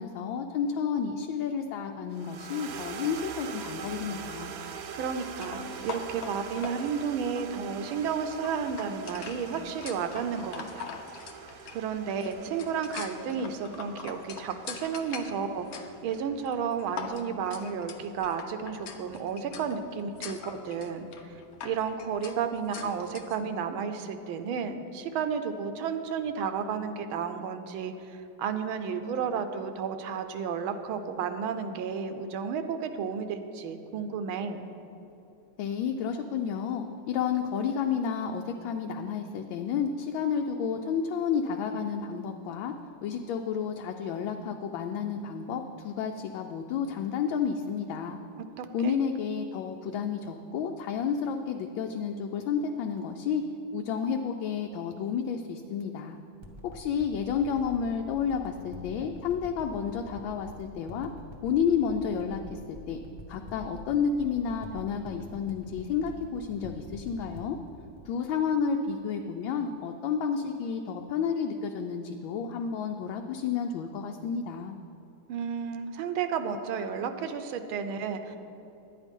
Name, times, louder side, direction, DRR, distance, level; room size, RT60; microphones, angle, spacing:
voice 1, 0.0-4.5 35.6-42.7 43.0-48.2 48.7-53.4 53.7-56.2 56.6-61.1 61.4-63.0 63.3-67.6 68.0-74.7, left 6 dB, 80° left, 3 dB, 1.3 m, -31 dB
sound 1, 2.1-16.6, right 6 dB, 65° right, 1.1 m, -43 dB
voice 2, 4.7-10.9 11.7-20.4 20.6-21.1 21.6-34.7 48.6-49.0 75.3-78.4, right 6 dB, 85° right, 8 dB, 1.5 m, -32 dB
sound 2, 5.3-23.4, left 6 dB, 65° left, 1.0 m, -44 dB
sound 3, 56.4-69.2 69.8-69.9, left 1 dB, 25° right, 0.6 m, -46 dB
11.0 x 9.1 x 5.3 m, 2.8 s
omnidirectional pair, 2.2 m